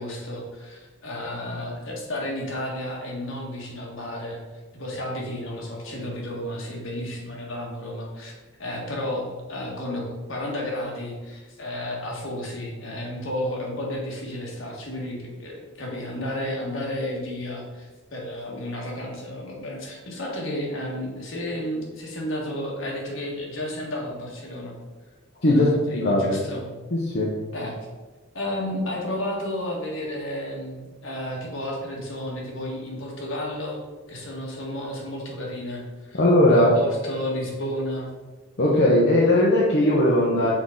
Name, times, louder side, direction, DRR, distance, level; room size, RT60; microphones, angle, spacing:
voice 1, 0.0-4.4 4.7-8.3 8.6-10.0 10.3-24.7 25.5-26.6 27.5-27.8 28.3-33.8 34.1-36.2 36.5-38.1, left 1 dB, 70° left, -2 dB, 1.6 m, -32 dB
voice 2, 25.4-26.4 26.9-27.3 36.1-36.7 38.6-40.5, left 1 dB, 55° left, -4 dB, 0.9 m, -19 dB
6.3 x 4.7 x 3.8 m, 1.2 s
head